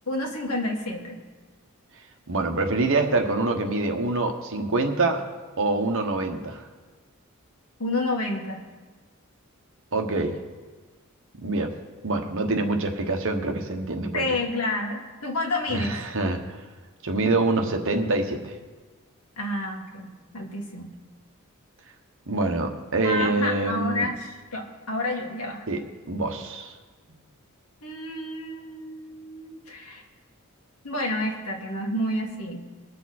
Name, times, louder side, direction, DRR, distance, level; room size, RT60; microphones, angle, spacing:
voice 1, 0.1-1.2 7.8-8.6 14.1-16.0 19.4-20.9 23.0-25.6 27.8-30.0 30.8-32.6, left 1 dB, 80° left, 1 dB, 2.0 m, -29 dB
voice 2, 2.3-5.2 5.6-6.6 9.9-10.4 11.4-11.7 12.0-14.2 15.7-16.6 17.0-18.5 22.3-24.1 25.7-25.8 26.1-26.7, right 2 dB, 60° right, 4 dB, 1.2 m, -25 dB
21.0 x 7.0 x 4.3 m, 1.3 s
head